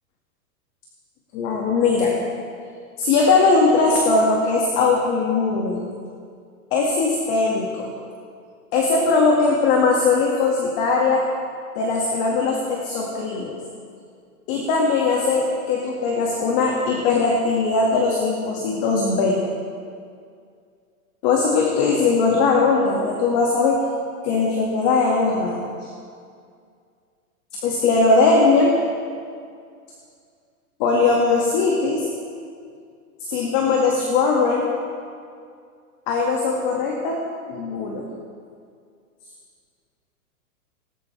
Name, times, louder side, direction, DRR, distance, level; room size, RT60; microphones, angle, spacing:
voice 1, 1.3-2.1 3.0-5.8 6.7-7.9 8.7-11.2 11.7-13.6 14.5-19.4 21.2-23.8 24.2-25.9 27.6-28.8 30.8-32.1 33.3-34.8 36.1-37.2 37.5-38.1, left 4 dB, 40° left, -1 dB, 2.3 m, -20 dB
19.0 x 19.0 x 3.5 m, 2.2 s
hypercardioid pair, 150°, 44 cm